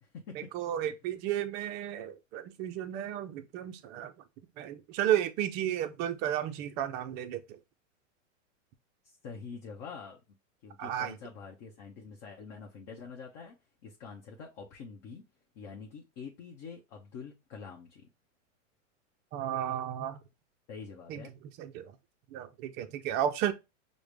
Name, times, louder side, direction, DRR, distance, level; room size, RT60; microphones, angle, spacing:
voice 1, 0.0-0.5 9.0-10.2 10.6-13.6 13.8-15.2 15.6-18.1 20.7-21.3, left 5 dB, 45° left, 0.8 m, -46 dB
voice 2, 0.5-4.1 4.6-7.6 10.8-11.1 19.3-20.2 21.1-21.2 21.6-21.9 22.3-23.5, right 11 dB, 30° right, 0.4 m, -33 dB
4.8 x 2.1 x 3.2 m
hypercardioid pair, 120°, 38 cm